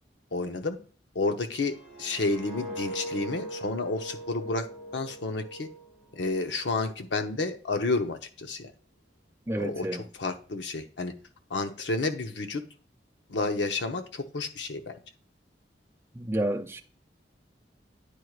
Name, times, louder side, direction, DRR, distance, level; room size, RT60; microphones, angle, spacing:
voice 1, 0.3-0.8 1.1-4.7 4.9-5.7 6.1-8.7 9.6-11.1 11.5-12.6 13.3-15.0, left 3 dB, 90° left, 0.8 m, -30 dB
sound 1, 1.5-6.6 6.9-7.2, right 1 dB, 75° left, 3.5 m, -41 dB
voice 2, 9.5-10.0 16.2-16.8, right 1 dB, 15° right, 0.5 m, -30 dB
9.9 x 4.6 x 2.4 m
head